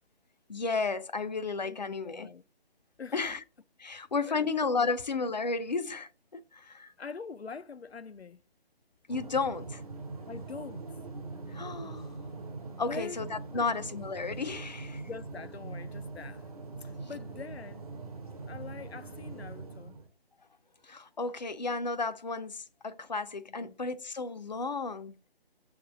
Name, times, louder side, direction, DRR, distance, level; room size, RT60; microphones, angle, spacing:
voice 1, 0.5-2.3 3.1-3.4 3.8-6.9 9.1-9.8 11.5-12.2 12.8-15.0 20.8-25.2, left 4 dB, 45° left, 0.5 m, -33 dB
voice 2, 1.6-2.4 3.0-3.4 4.3-4.4 4.7-4.9 7.0-8.4 10.3-10.9 12.8-13.2 13.5-13.7 15.0-16.5 16.8-17.8 18.5-20.0 23.5-23.8, left 5 dB, 90° left, 0.6 m, -44 dB
sound 1, 9.1-20.1, right 3 dB, 35° right, 0.9 m, -42 dB
6.9 x 3.6 x 6.2 m
figure-of-eight pair, 150°, 31 cm